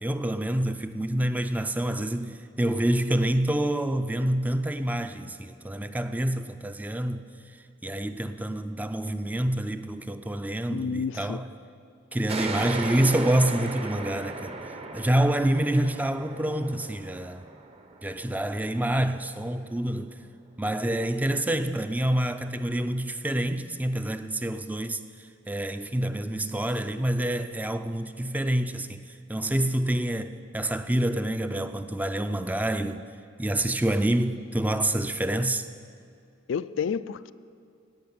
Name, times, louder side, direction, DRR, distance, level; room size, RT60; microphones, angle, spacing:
voice 1, 0.0-7.2 7.8-11.5 12.1-14.5 14.9-17.4 18.0-20.2 20.6-25.0 25.5-29.0 29.3-33.0 33.4-35.6, right 1 dB, 10° right, 0.4 m, -27 dB
voice 2, 10.7-11.4 36.5-37.3, left 6 dB, 75° left, 0.3 m, -30 dB
sound 1, 12.3-19.5, right 3 dB, 30° right, 0.8 m, -37 dB
16.5 x 5.8 x 9.7 m
head